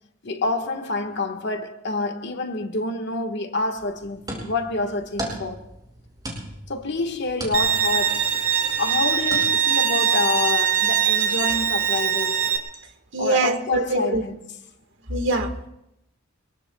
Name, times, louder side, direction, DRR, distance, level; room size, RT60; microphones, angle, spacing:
voice 1, 0.2-5.7 6.7-8.3 8.8-12.4 13.2-14.3, left 3 dB, 55° left, 1.7 m, -27 dB
sound 1, 3.8-9.4, right 1 dB, 20° right, 6.2 m, -37 dB
Bowed string instrument, 7.5-12.6, right 8 dB, 90° right, 3.3 m, -22 dB
voice 2, 13.1-14.2 15.1-15.7, right 2 dB, 60° right, 1.8 m, -23 dB
26.0 x 23.5 x 2.4 m
head